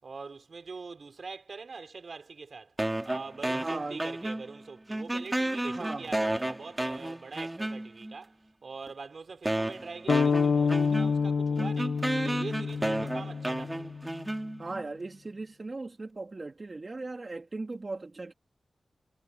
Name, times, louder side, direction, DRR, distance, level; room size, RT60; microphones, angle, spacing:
voice 1, 0.0-2.8 3.0-8.4 8.6-13.9, right 4 dB, 55° right, 5.7 m, -43 dB
sound 1, 2.8-4.6 4.9-8.1 8.9-9.0 9.5-14.9, right 1 dB, 15° right, 2.4 m, -32 dB
voice 2, 3.5-4.0 5.7-6.1 14.6-18.3, right 3 dB, 35° right, 3.2 m, -38 dB
sound 2, 10.1-14.0, left 5 dB, 80° left, 1.6 m, -28 dB
wide cardioid pair, 140°, 0 cm